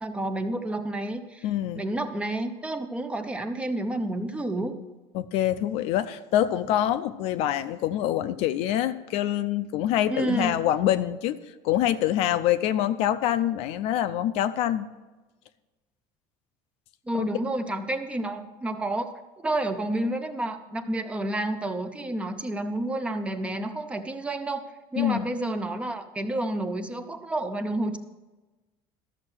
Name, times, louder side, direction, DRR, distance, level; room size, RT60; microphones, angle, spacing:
voice 1, 0.0-1.5 1.8-4.7 10.1-10.6 17.1-24.6 24.9-28.0, right 1 dB, 10° right, 8 dB, 0.6 m, -30 dB
voice 2, 1.4-1.9 5.1-11.4 11.6-14.9 17.2-17.3 25.0-25.3, left 12 dB, 60° left, 12 dB, 0.6 m, -25 dB
13.0 x 6.7 x 6.2 m, 1.2 s
cardioid pair, 165°, 12 cm